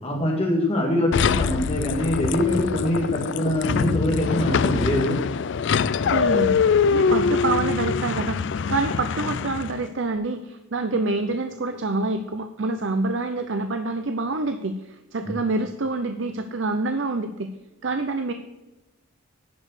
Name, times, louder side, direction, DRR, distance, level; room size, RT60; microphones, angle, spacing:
voice 1, 0.0-5.2 15.2-15.3, left 1 dB, 30° left, 0 dB, 2.0 m, -23 dB
sound 1, 1.1-9.8, left 5 dB, 60° left, 0.4 m, -23 dB
voice 2, 6.1-6.6 6.9-17.5 17.8-18.3, right 3 dB, 65° right, 8 dB, 0.7 m, -27 dB
11.0 x 5.4 x 6.6 m, 1.1 s
head